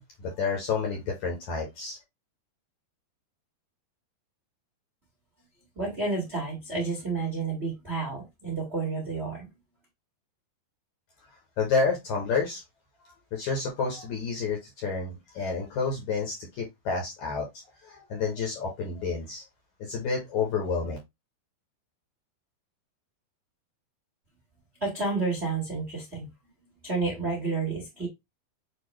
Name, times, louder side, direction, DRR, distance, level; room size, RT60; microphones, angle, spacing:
voice 1, 0.0-2.0 11.6-12.6 13.0-17.4 17.8-19.4 19.8-21.0, left 5 dB, 65° left, 2.0 m, -30 dB
voice 2, 5.7-9.6 24.8-26.3 26.6-28.1, right 3 dB, 40° right, 0.8 m, -30 dB
6.8 x 2.4 x 3.1 m
omnidirectional pair, 4.6 m